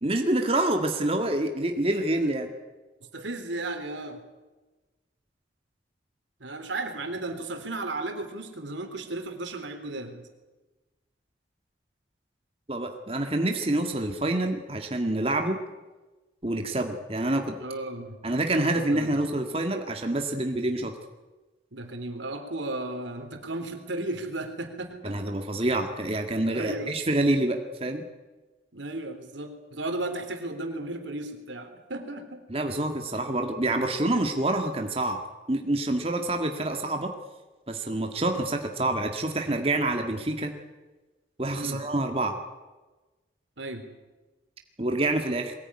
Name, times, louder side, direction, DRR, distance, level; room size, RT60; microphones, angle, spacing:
voice 1, 0.0-2.5 12.7-15.6 16.4-17.6 18.2-20.9 25.0-28.0 32.5-35.2 35.5-37.1 37.7-40.5 41.4-42.3 44.8-45.5, right 1 dB, 30° right, 4 dB, 1.8 m, -27 dB
voice 2, 3.1-4.2 6.4-10.3 17.6-18.2 18.9-19.4 21.7-25.4 26.5-26.9 28.7-32.4 41.5-41.8 43.6-43.9, right 2 dB, 85° right, 6 dB, 3.6 m, -35 dB
22.5 x 19.0 x 9.8 m, 1.2 s
head